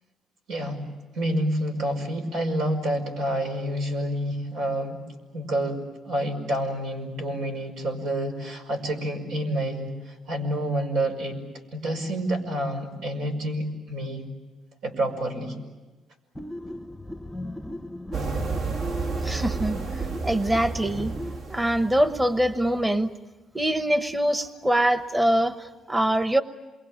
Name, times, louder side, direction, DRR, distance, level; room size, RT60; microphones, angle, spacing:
voice 1, 0.5-0.8 1.1-5.0 5.3-11.4 11.7-14.3 14.8-15.5, right 1 dB, 90° right, 2 dB, 5.4 m, -28 dB
sound 1, 16.3-21.4, left 1 dB, 5° left, 0.8 m, -37 dB
sound 2, 18.1-22.8, right 4 dB, 70° right, 2.0 m, -32 dB
voice 2, 19.2-21.1 21.5-23.1 23.5-26.4, right 1 dB, 15° right, 11 dB, 1.0 m, -24 dB
28.0 x 23.0 x 8.7 m, 1.2 s
cardioid pair, 90°, 0 cm